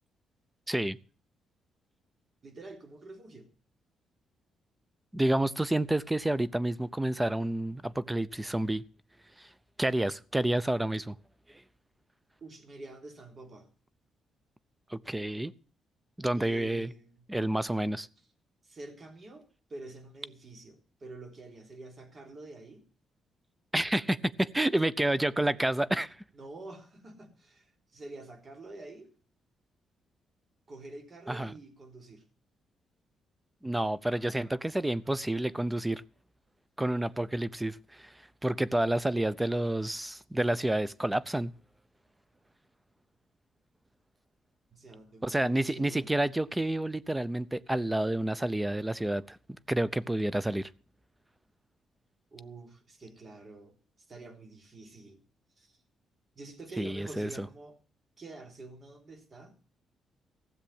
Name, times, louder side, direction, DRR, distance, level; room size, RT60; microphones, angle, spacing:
voice 1, 2.4-3.5 12.4-13.7 16.4-17.2 18.6-22.8 26.3-29.1 30.7-32.2 44.7-46.1 52.3-55.2 55.6-55.8 56.4-57.8 58.2-59.5, right 2 dB, 35° right, 3.6 m, -47 dB
voice 2, 5.1-8.8 9.4-9.5 9.8-11.2 14.9-15.5 16.2-16.9 17.3-18.1 23.7-26.2 31.3-31.5 33.6-36.0 36.8-38.1 38.4-41.5 45.2-49.4 49.7-50.7 56.8-57.5, right 1 dB, 10° right, 0.7 m, -29 dB
16.0 x 7.5 x 8.6 m
cardioid pair, 115°, 0 cm